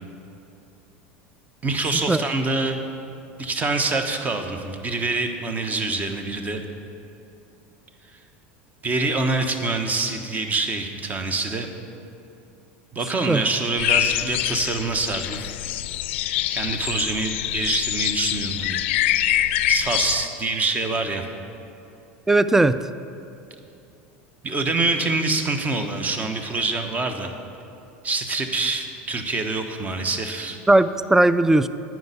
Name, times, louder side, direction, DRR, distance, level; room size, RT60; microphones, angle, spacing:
voice 1, 1.6-2.8 3.4-6.6 8.8-11.7 12.9-15.5 16.5-18.8 19.7-21.2 24.4-27.3 28.0-30.6, right 3 dB, 25° right, 6 dB, 1.1 m, -25 dB
sound 1, 13.8-20.3, left 14 dB, 75° left, 0.4 m, -25 dB
voice 2, 22.3-22.8 30.7-31.7, right 2 dB, 5° right, 14 dB, 0.3 m, -17 dB
9.5 x 6.1 x 8.3 m, 2.8 s
hypercardioid pair, 90°, 6 cm